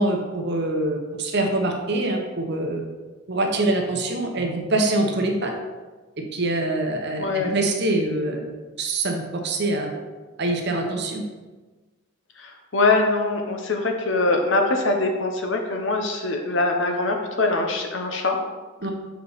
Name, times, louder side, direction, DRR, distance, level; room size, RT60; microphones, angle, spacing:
voice 1, 0.0-2.8 3.3-5.5 6.3-8.4 8.8-9.9 10.4-11.2 18.8-18.9, right 2 dB, 50° right, 2 dB, 0.9 m, -24 dB
voice 2, 7.2-7.6 12.4-18.4, left 2 dB, 60° left, 3 dB, 0.9 m, -23 dB
7.1 x 4.6 x 4.0 m, 1.3 s
head